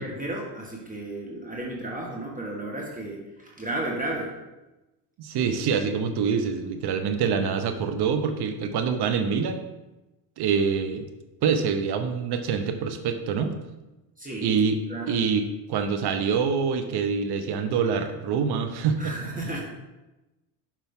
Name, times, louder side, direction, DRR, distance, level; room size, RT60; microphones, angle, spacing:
voice 1, 0.0-4.3 14.2-14.5 14.9-15.2 19.0-19.6, right 1 dB, 15° right, -2 dB, 1.4 m, -33 dB
voice 2, 5.2-9.7 10.4-11.1 11.4-13.5 14.4-14.8 15.1-19.2, right 6 dB, 55° right, 8 dB, 0.9 m, -25 dB
7.4 x 5.2 x 3.6 m, 1.0 s
supercardioid pair, 85°, 47 cm